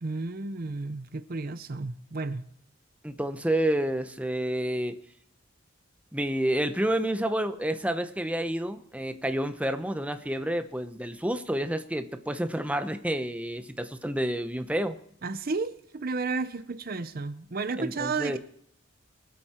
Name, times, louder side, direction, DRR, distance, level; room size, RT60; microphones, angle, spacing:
voice 1, 0.0-2.5 15.2-18.4, right 3 dB, 45° right, 0.6 m, -32 dB
voice 2, 3.0-4.9 6.1-15.0 17.8-18.4, right 1 dB, 5° right, 0.8 m, -29 dB
23.0 x 8.4 x 4.4 m
head